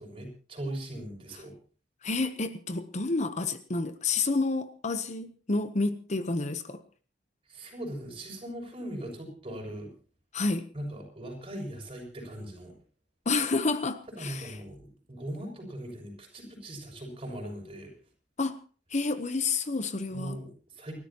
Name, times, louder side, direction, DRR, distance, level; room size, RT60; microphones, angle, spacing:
voice 1, 0.0-1.6 7.5-9.9 10.7-12.7 14.2-17.9 20.1-21.0, right 1 dB, 30° right, 6.7 m, -40 dB
voice 2, 2.0-6.8 10.3-10.7 13.3-14.6 18.4-18.6 18.9-20.4, left 3 dB, 40° left, 0.9 m, -29 dB
29.5 x 13.0 x 3.0 m
head